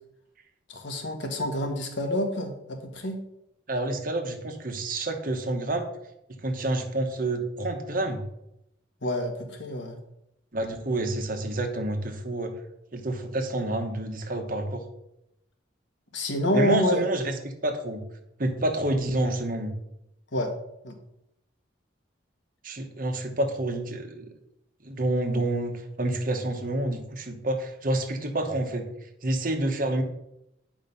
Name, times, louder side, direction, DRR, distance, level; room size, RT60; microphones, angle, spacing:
voice 1, 0.7-3.2 9.0-10.0 16.1-17.0 20.3-20.5 20.8-21.0, left 1 dB, 65° left, 4 dB, 1.5 m, -27 dB
voice 2, 3.7-5.9 6.4-8.3 10.5-12.5 12.9-14.8 16.5-18.1 18.4-19.8 22.6-24.3 24.8-28.9 29.2-30.0, right 1 dB, 45° right, 5 dB, 1.1 m, -28 dB
9.3 x 5.1 x 5.5 m, 0.82 s
head